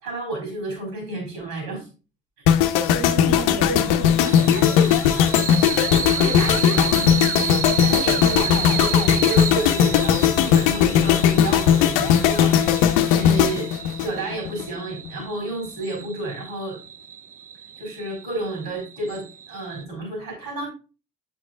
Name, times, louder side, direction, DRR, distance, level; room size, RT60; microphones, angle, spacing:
voice 1, 0.0-1.9 5.9-12.6 12.8-13.7 14.0-16.8 17.8-20.7, right 2 dB, 70° right, 1 dB, 4.0 m, -31 dB
sound 1, 2.5-14.7 14.9-15.2, left 9 dB, 65° left, 0.7 m, -18 dB
voice 2, 2.9-5.3, right 3 dB, 40° right, 2 dB, 1.9 m, -33 dB
sound 2, 4.2-19.8, right 8 dB, 20° right, 0.4 m, -32 dB
7.9 x 6.1 x 2.4 m, 0.33 s
figure-of-eight pair, 45°, 38 cm